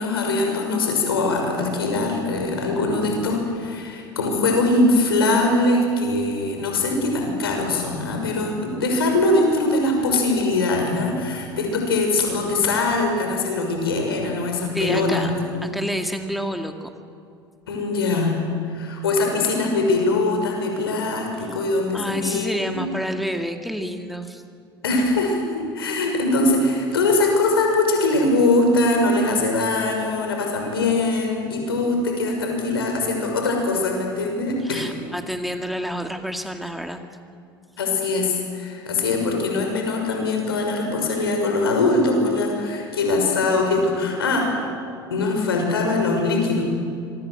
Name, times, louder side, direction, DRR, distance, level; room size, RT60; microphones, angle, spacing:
voice 1, 0.0-15.3 17.7-22.9 24.8-34.8 37.8-44.7 45.1-46.6, left 2 dB, 80° left, 2 dB, 6.1 m, -22 dB
voice 2, 14.7-15.3 15.6-16.9 21.4-21.6 21.9-24.4 34.6-37.0, equal, ahead, 5 dB, 2.2 m, -29 dB
26.5 x 23.5 x 7.9 m, 2.4 s
hypercardioid pair, 70°, 12 cm